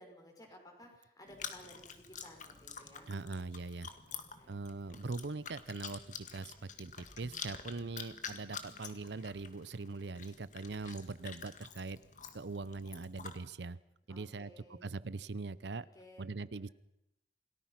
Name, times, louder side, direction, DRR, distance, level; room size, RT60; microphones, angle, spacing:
voice 1, 0.0-3.1 4.3-4.6 14.1-14.8 15.9-16.2, equal, 20° left, 2 dB, 5.9 m, -56 dB
Chewing mastication, 1.3-13.4, left 6 dB, 45° left, 2.1 m, -48 dB
voice 2, 3.1-3.9 4.5-12.0 12.3-13.8 14.1-14.5 14.8-15.9 16.2-16.7, right 3 dB, 75° right, 17 dB, 0.7 m, -42 dB
28.0 x 19.0 x 5.8 m, 0.86 s
head